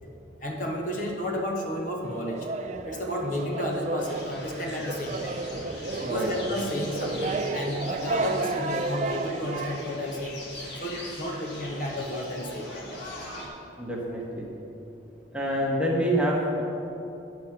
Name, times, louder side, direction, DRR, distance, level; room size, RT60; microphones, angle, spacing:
voice 1, 0.4-2.5 2.9-5.4 6.0-10.4 10.8-13.4, left 1 dB, 40° left, 0 dB, 1.0 m, -32 dB
sound 1, 2.0-9.8, right 3 dB, 35° right, 0.4 m, -32 dB
sound 2, 4.0-13.5, left 1 dB, 60° left, 1.6 m, -41 dB
voice 2, 13.8-14.5 15.3-16.6, equal, 5° right, -3 dB, 1.1 m, -27 dB
9.7 x 6.3 x 5.8 m, 3.0 s
head